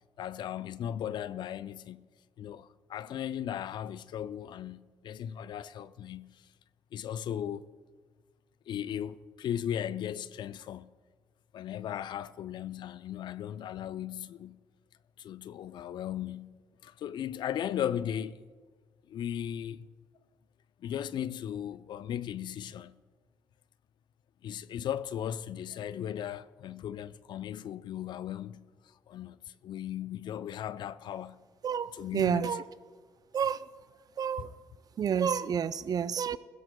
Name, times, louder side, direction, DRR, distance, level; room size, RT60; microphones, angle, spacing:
voice 1, 0.2-2.1 2.4-6.5 6.9-7.7 8.7-10.9 11.5-14.6 15.2-18.4 19.1-19.9 20.8-23.0 24.4-28.7 29.1-31.4 31.9-32.6 34.4-34.5, left 10 dB, 60° left, 0.5 m, -37 dB
voice 2, 31.6-32.6 33.3-33.7 34.2-34.5 35.0-36.4, right 7 dB, 45° right, 0.5 m, -29 dB
21.0 x 15.5 x 2.2 m
hypercardioid pair, 55°, 9 cm